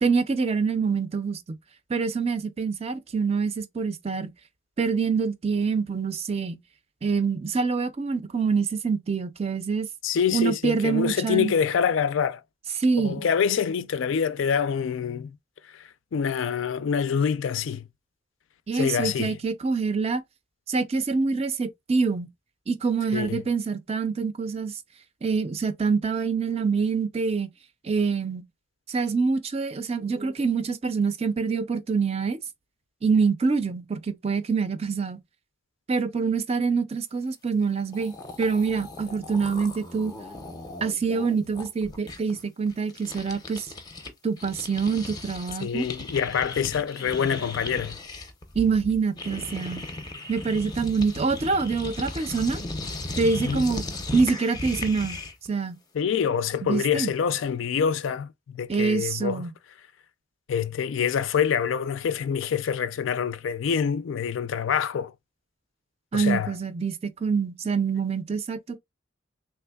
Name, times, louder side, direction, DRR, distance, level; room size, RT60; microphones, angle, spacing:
voice 1, 0.0-1.6 1.9-4.3 4.8-6.6 7.0-9.9 10.3-11.5 12.8-13.2 18.7-20.2 20.7-22.3 22.7-24.8 25.2-27.5 27.8-28.4 28.9-32.4 33.0-35.2 35.9-40.1 40.8-43.7 44.2-45.9 48.6-49.8 50.3-52.6 53.2-53.8 54.1-55.2 55.5-55.8 56.6-57.1 58.7-59.5 66.1-68.8, right 5 dB, 30° right, 0.4 m, -25 dB
voice 2, 10.0-12.4 13.0-15.4 15.7-17.9 18.7-19.4 23.1-23.4 45.6-48.0 53.4-53.6 55.9-59.5 60.5-65.1 66.1-66.5, left 7 dB, 70° left, 0.4 m, -26 dB
sound 1, 37.6-37.7 37.9-44.1 44.4-55.5, left 2 dB, 20° left, 0.5 m, -37 dB
3.3 x 3.2 x 2.2 m
head